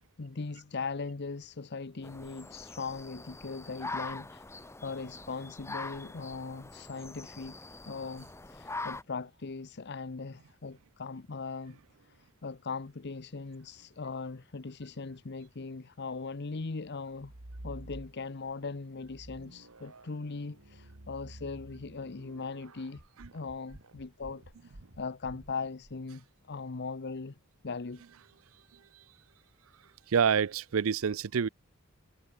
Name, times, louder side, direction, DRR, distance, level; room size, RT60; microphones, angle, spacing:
voice 1, 0.2-4.5 4.8-7.6 7.9-17.3 17.6-23.0 23.3-27.4 27.6-28.0, left 4 dB, 55° left, 0.8 m, -39 dB
sound 1, 2.0-9.0, left 3 dB, 15° left, 0.9 m, -43 dB
sound 2, 17.1-18.5 19.0-26.0, right 1 dB, 90° right, 2.5 m, -50 dB
voice 2, 30.1-31.5, right 7 dB, 75° right, 0.5 m, -27 dB
head